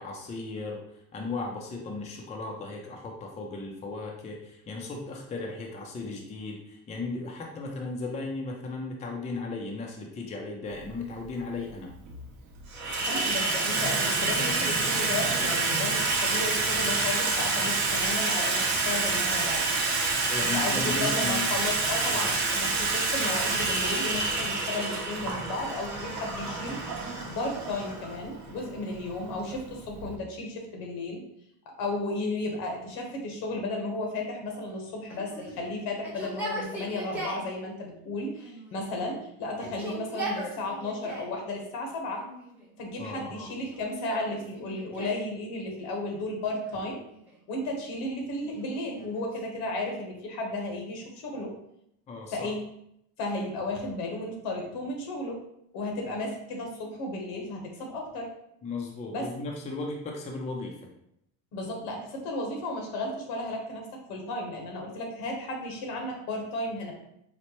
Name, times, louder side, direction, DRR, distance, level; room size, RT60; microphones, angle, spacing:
voice 1, 0.0-11.9 20.3-21.7 22.1-22.3 43.0-43.5 52.1-52.5 58.6-60.8, left 3 dB, 15° left, 0 dB, 0.5 m, -36 dB
Water tap faucet / Sink (filling or washing), 10.8-10.9 11.8-12.2 12.5-30.1, right 3 dB, 45° right, 0.8 m, -28 dB
voice 2, 13.1-20.0 20.4-31.2 31.8-42.3 42.8-47.0 47.5-51.5 52.3-52.6 53.2-55.4 55.7-58.3 59.1-59.3 61.5-66.9, left 2 dB, 75° left, 1 dB, 1.1 m, -34 dB
Yell, 35.1-37.5 38.4-39.1 39.5-41.4 42.1-42.8 43.5-45.3 46.7-47.5 48.3-50.1, right 1 dB, 5° right, 0.8 m, -40 dB
4.3 x 2.1 x 3.0 m, 0.76 s
cardioid pair, 125°, 41 cm